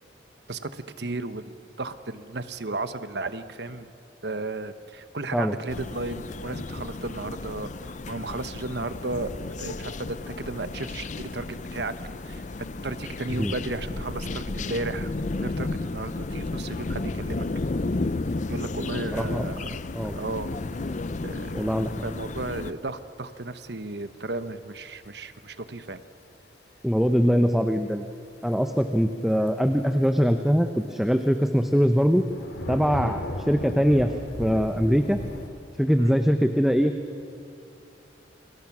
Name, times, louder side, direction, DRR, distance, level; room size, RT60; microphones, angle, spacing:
voice 1, 0.5-3.9 4.2-7.7 8.1-9.3 9.6-11.5 11.7-11.9 12.2-12.4 12.8-15.1 15.4-17.5 18.5-19.8 20.1-20.5 21.2-26.0 33.0-33.2 36.0-36.1, right 2 dB, 65° right, 11 dB, 1.1 m, -34 dB
sound 1, 5.7-22.7, left 2 dB, 40° left, 0.6 m, -33 dB
voice 2, 19.1-19.5 19.9-20.2 21.5-21.9 26.8-28.1 28.4-32.2 32.7-34.1 34.4-35.2 35.8-36.9, equal, ahead, 6 dB, 0.8 m, -22 dB
sound 2, 19.4-19.5 20.1-20.5 21.3-22.0 22.3-23.1 23.7-23.9 24.3-25.1 25.9-26.0 27.8-27.9 28.1-28.4 28.9-29.1 29.5-30.1 30.7-30.8 31.8-35.5, left 1 dB, 65° left, 2.5 m, -37 dB
29.5 x 25.0 x 6.1 m, 2.7 s
head